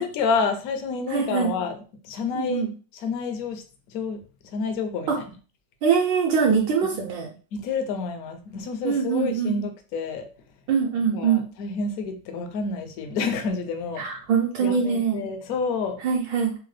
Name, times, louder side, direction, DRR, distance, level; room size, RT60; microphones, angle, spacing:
voice 1, 0.0-1.8 2.0-2.7 2.9-3.6 3.9-4.2 4.4-5.1 6.5-7.1 7.5-10.3 10.9-14.1 14.6-16.0, left 5 dB, 70° left, 6 dB, 0.9 m, -29 dB
voice 2, 1.1-1.5 2.3-2.7 5.1-5.2 5.8-7.3 8.8-9.6 10.7-11.4 14.0-15.2 16.0-16.6, right 6 dB, 75° right, -1 dB, 1.3 m, -23 dB
3.5 x 2.1 x 3.2 m, 0.36 s
omnidirectional pair, 2.0 m